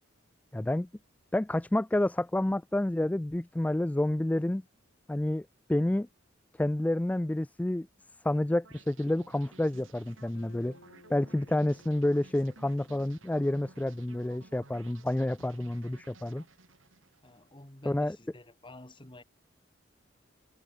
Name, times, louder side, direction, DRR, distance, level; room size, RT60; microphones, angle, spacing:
voice 1, 0.5-0.9 1.3-4.6 5.1-6.1 6.6-7.9 8.2-10.7 11.1-16.4 17.9-18.2, left 1 dB, 10° left, 0.3 m, -29 dB
sound 1, 8.6-17.7, right 3 dB, 90° right, 2.7 m, -56 dB
sound 2, 10.3-14.7, left 2 dB, 75° left, 1.4 m, -60 dB
voice 2, 17.2-19.2, left 1 dB, 25° left, 2.7 m, -50 dB
head